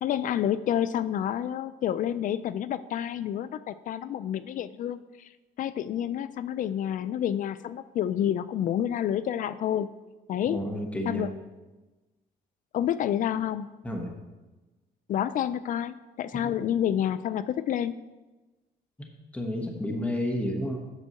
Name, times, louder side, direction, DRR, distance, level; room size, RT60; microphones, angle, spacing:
voice 1, 0.0-5.3 5.6-9.9 10.3-10.6 11.1-11.3 12.7-13.7 15.1-17.9, left 10 dB, 50° left, 16 dB, 0.4 m, -29 dB
voice 2, 10.5-11.2 13.8-14.1 16.4-16.6 19.0-20.8, left 1 dB, 10° left, 2 dB, 1.1 m, -31 dB
8.3 x 4.5 x 6.4 m, 1.2 s
cardioid pair, 110°, 17 cm